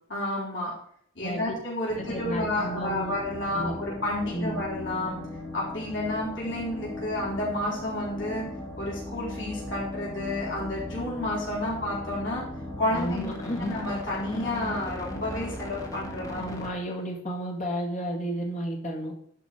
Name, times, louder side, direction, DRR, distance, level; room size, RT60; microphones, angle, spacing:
voice 1, 0.1-0.7 1.1-5.2 5.5-8.4 8.8-12.4 12.8-13.3 13.6-16.4, left 1 dB, 65° left, -6 dB, 4.2 m, -31 dB
sound 1, 1.9-16.7, left 1 dB, 20° left, 1.6 m, -38 dB
voice 2, 2.0-3.2 3.5-3.7 4.3-4.6 12.9-13.8 16.4-19.1, equal, 40° left, 0 dB, 2.2 m, -32 dB
11.5 x 5.0 x 5.2 m, 0.64 s
head